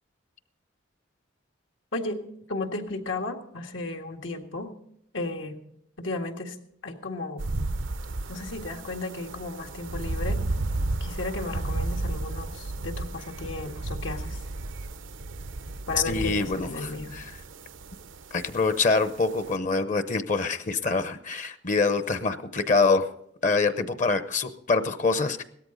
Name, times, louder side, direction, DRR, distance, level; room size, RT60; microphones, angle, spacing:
voice 1, 1.9-2.2 2.5-4.7 5.1-5.6 6.0-6.6 6.8-7.5 8.3-10.4 11.0-14.4 15.9-17.1, left 2 dB, 85° left, 3 dB, 1.9 m, -34 dB
sound 1, 7.4-19.6, right 2 dB, 85° right, 0.8 m, -33 dB
voice 2, 16.0-17.2 18.3-23.1 23.4-25.4, left 4 dB, 40° left, 12 dB, 0.8 m, -25 dB
17.5 x 13.5 x 3.9 m, 0.71 s
head